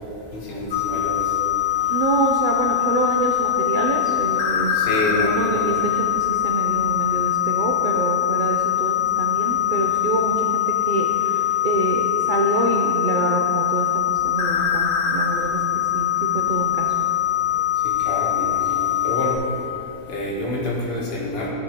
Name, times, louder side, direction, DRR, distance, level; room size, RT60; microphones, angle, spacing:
voice 1, 0.3-1.2 1.7-1.9 4.2-5.8 15.4-15.5 17.8-19.4 20.1-21.5, left 1 dB, 45° left, -4 dB, 1.3 m, -28 dB
sound 1, 0.7-19.4, left 11 dB, 65° left, 0.6 m, -22 dB
voice 2, 1.9-4.7 5.1-16.9, right 2 dB, 70° right, 0 dB, 0.4 m, -26 dB
14.0 x 5.4 x 2.9 m, 2.7 s
omnidirectional pair, 1.6 m